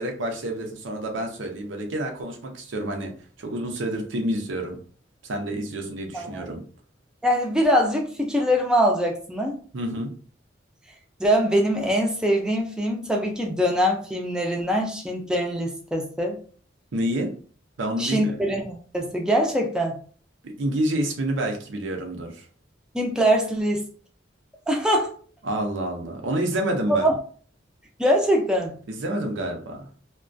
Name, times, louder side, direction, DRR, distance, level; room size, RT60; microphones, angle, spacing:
voice 1, 0.0-3.1 3.4-4.8 5.2-6.6 9.7-10.2 16.9-17.3 17.8-18.4 20.4-22.5 25.4-27.1 28.9-29.8, right 1 dB, 90° right, 2 dB, 0.6 m, -28 dB
voice 2, 6.1-6.4 7.2-9.6 11.2-16.4 18.0-19.9 22.9-23.9 24.7-25.1 26.9-27.1 28.0-28.7, equal, 5° right, 0 dB, 0.4 m, -23 dB
2.2 x 2.2 x 2.5 m, 0.43 s
head